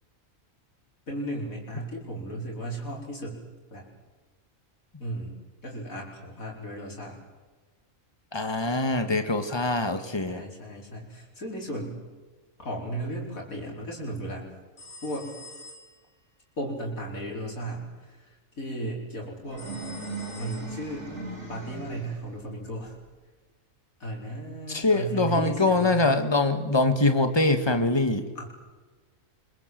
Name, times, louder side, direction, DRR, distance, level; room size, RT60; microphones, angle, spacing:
voice 1, 1.1-3.4 3.7-3.9 5.0-5.4 5.6-7.2 10.2-12.0 12.6-14.4 15.0-15.3 16.6-18.3 18.6-19.7 20.4-21.1 21.5-22.9 24.0-26.0 28.4-28.5, right 1 dB, 85° left, -1 dB, 5.2 m, -35 dB
voice 2, 8.3-10.4 24.7-28.2, left 2 dB, 20° left, 8 dB, 1.9 m, -23 dB
sound 1, 14.8-16.1 19.6-21.2, left 2 dB, 50° left, 3.8 m, -47 dB
sound 2, 19.4-22.3, right 3 dB, 55° right, 4.8 m, -38 dB
25.5 x 23.0 x 7.8 m, 1.3 s
omnidirectional pair, 1.4 m